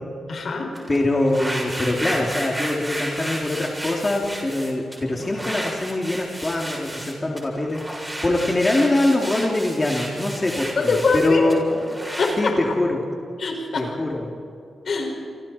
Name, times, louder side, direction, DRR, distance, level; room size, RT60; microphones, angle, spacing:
voice 1, 0.3-0.7 10.8-11.5 12.2-12.6 13.4-13.9 14.9-15.1, left 4 dB, 60° left, 2 dB, 5.5 m, -23 dB
sound 1, 0.7-12.4, right 1 dB, 10° right, 7.0 m, -32 dB
voice 2, 0.9-11.7 12.4-13.0 13.8-14.2, left 2 dB, 25° left, -1 dB, 2.8 m, -23 dB
29.5 x 25.5 x 4.4 m, 2.7 s
cardioid pair, 70°, 0 cm